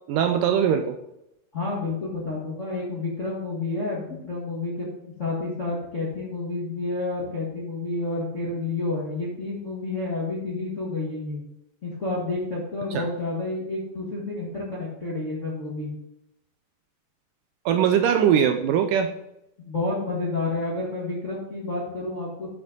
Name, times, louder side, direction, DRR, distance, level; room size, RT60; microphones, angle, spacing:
voice 1, 0.1-1.0 12.9-13.1 17.7-19.1, right 8 dB, 85° right, 7 dB, 1.9 m, -21 dB
voice 2, 1.5-4.9 5.2-11.4 11.8-15.9 19.6-22.5, left 2 dB, 65° left, -5 dB, 0.7 m, -30 dB
8.7 x 6.0 x 3.9 m, 0.83 s
omnidirectional pair, 4.3 m